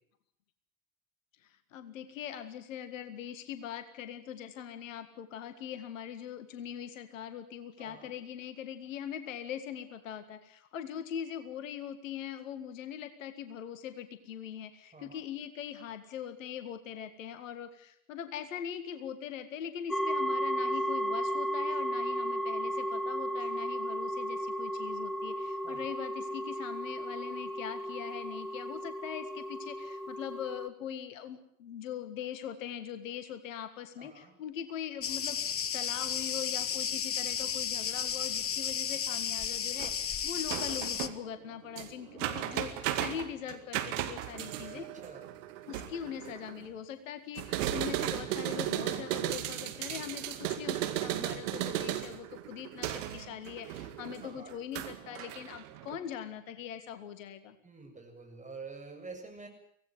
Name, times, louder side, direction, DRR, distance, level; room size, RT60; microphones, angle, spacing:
voice 1, 1.4-44.9 45.7-57.6, left 9 dB, 70° left, 11 dB, 1.9 m, -42 dB
voice 2, 7.8-8.1 14.9-15.2 25.6-25.9 34.0-34.4 42.3-42.6 44.5-45.3 54.2-54.5 57.6-59.5, right 4 dB, 20° right, 4 dB, 7.6 m, -48 dB
sound 1, 19.9-30.7, equal, ahead, 1.3 m, -34 dB
Cricket, 35.0-41.1, left 8 dB, 35° left, 1.4 m, -33 dB
sound 2, 39.8-40.0 40.5-46.7 47.3-56.0, right 13 dB, 65° right, 2.1 m, -36 dB
24.5 x 17.5 x 9.2 m, 0.67 s
figure-of-eight pair, 55°, 40 cm